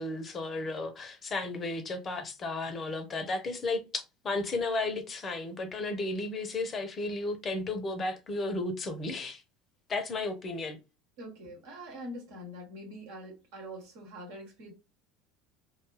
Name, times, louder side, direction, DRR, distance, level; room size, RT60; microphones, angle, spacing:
voice 1, 0.0-9.4 9.9-10.8, left 2 dB, 30° left, 0.6 m, -34 dB
voice 2, 11.2-14.7, equal, 60° right, 1.1 m, -44 dB
2.6 x 2.3 x 3.0 m
figure-of-eight pair, 70°, 0 cm